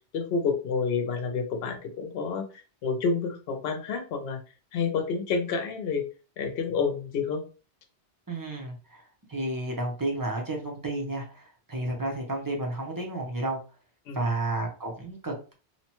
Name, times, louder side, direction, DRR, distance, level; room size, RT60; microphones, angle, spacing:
voice 1, 0.1-2.5 2.8-4.4 4.7-6.0 6.4-7.4 14.1-14.2, left 5 dB, 65° left, 4 dB, 0.8 m, -29 dB
voice 2, 8.3-13.6 14.1-15.5, right 2 dB, 25° right, 1 dB, 0.5 m, -32 dB
2.9 x 2.1 x 2.9 m, 0.35 s
omnidirectional pair, 1.2 m